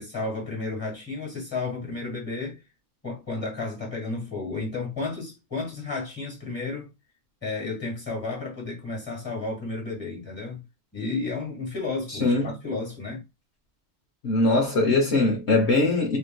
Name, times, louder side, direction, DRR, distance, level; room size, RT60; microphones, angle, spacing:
voice 1, 0.0-2.6 3.0-6.9 7.4-10.6 10.9-13.2, left 3 dB, 20° left, 1.7 m, -32 dB
voice 2, 14.2-16.2, left 2 dB, 65° left, 1.2 m, -21 dB
3.2 x 3.1 x 2.2 m
omnidirectional pair, 1.3 m